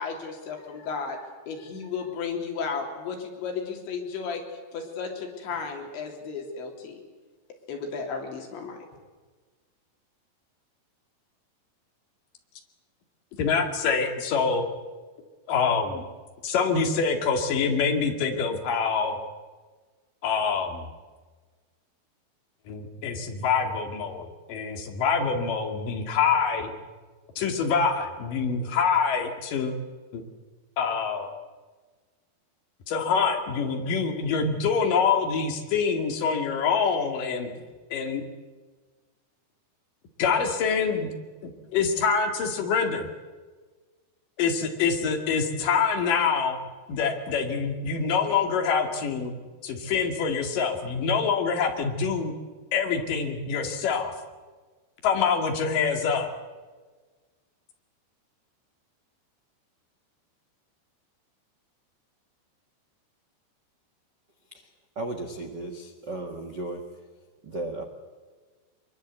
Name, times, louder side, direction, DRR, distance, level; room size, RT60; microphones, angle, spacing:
voice 1, 0.0-4.4 4.7-7.0 7.7-8.9, left 5 dB, 90° left, 2 dB, 5.6 m, -34 dB
voice 2, 13.4-14.7 15.5-16.1 16.4-19.2 20.2-20.9 22.7-26.7 27.4-29.7 30.1-30.2 30.8-31.3 32.9-37.5 37.9-38.3 40.2-41.1 41.4-43.1 44.4-46.6 46.9-49.3 49.6-52.3 52.7-54.1 55.0-56.3, left 5 dB, 55° left, 4 dB, 3.4 m, -25 dB
voice 3, 64.9-66.8 67.4-67.8, right 2 dB, 80° right, 4 dB, 0.9 m, -35 dB
24.0 x 22.0 x 8.2 m, 1.4 s
omnidirectional pair, 5.1 m